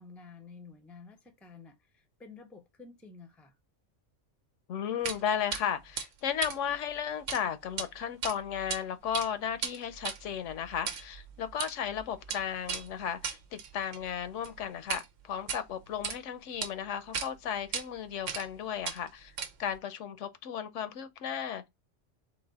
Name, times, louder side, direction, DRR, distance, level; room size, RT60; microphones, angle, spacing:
voice 1, 0.0-3.5, left 4 dB, ahead, 0.4 m, -51 dB
voice 2, 4.7-19.3 19.6-21.7, left 8 dB, 80° left, 0.9 m, -35 dB
sound 1, 5.0-5.2 5.5-5.6 6.0-7.4 7.7-7.9 8.2-8.8 9.1-15.1 15.4-16.2 16.6-16.7 17.1-17.3 17.7-17.8 18.3-18.6 18.8-19.8, right 6 dB, 80° right, 1.1 m, -37 dB
4.0 x 3.1 x 3.9 m
omnidirectional pair, 1.3 m